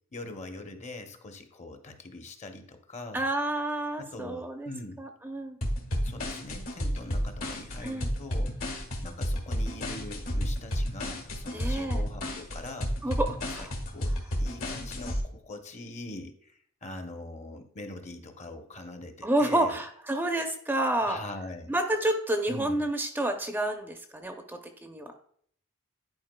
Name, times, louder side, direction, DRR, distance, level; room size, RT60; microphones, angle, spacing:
voice 1, 0.1-3.3 4.0-5.0 6.0-8.6 9.0-12.9 13.4-13.7 13.9-19.8 21.0-21.7 22.5-22.8, left 2 dB, 35° left, 6 dB, 0.8 m, -42 dB
voice 2, 3.1-4.7 5.0-5.6 7.8-8.1 11.5-12.0 13.0-13.7 19.2-21.2 21.7-25.1, right 1 dB, 10° right, 4 dB, 0.5 m, -29 dB
sound 1, 5.6-15.2, equal, 70° left, 1.6 m, -31 dB
10.5 x 4.6 x 2.2 m, 0.62 s
head